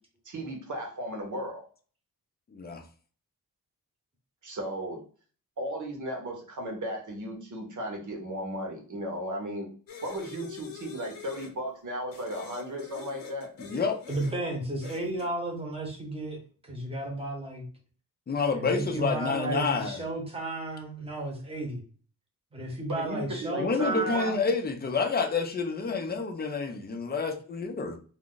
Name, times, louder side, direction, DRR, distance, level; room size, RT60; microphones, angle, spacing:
voice 1, 0.2-1.6 4.4-5.0 5.6-9.7 10.0-13.5 22.9-24.3 25.9-26.0, equal, 60° right, 1 dB, 1.0 m, -35 dB
voice 2, 2.5-2.8 13.6-14.0 18.3-20.0 23.6-28.0, left 4 dB, 30° left, 4 dB, 0.5 m, -29 dB
sound 1, 9.9-11.5 12.1-14.4 14.8-15.3, left 6 dB, 70° left, 0.7 m, -44 dB
voice 3, 14.1-16.4 16.6-17.7 18.5-21.8 22.5-24.4, right 2 dB, 15° right, -1 dB, 0.9 m, -33 dB
2.5 x 2.4 x 3.7 m, 0.42 s
wide cardioid pair, 150°, 35 cm